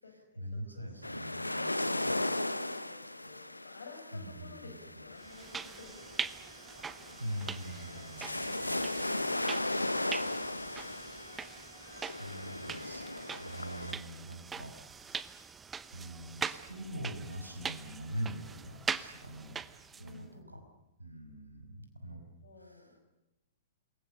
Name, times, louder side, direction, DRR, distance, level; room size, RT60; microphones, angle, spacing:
voice 1, 0.0-2.2 4.1-5.0 7.2-8.8 12.0-15.6 15.9-19.6 20.0-20.6 21.0-22.2 22.6-23.0, equal, 85° right, 5 dB, 5.5 m, -43 dB
sound 1, 1.0-13.9, left 1 dB, 85° left, 1.0 m, -37 dB
voice 2, 1.6-4.7 5.0-6.6 7.0-7.2 13.8-14.2 20.0-20.6 22.4-22.9, left 4 dB, 65° left, 5 dB, 6.4 m, -54 dB
sound 2, 5.2-20.2, right 6 dB, 15° right, 0.9 m, -42 dB
27.5 x 22.5 x 6.7 m, 0.94 s
figure-of-eight pair, 110°, 0 cm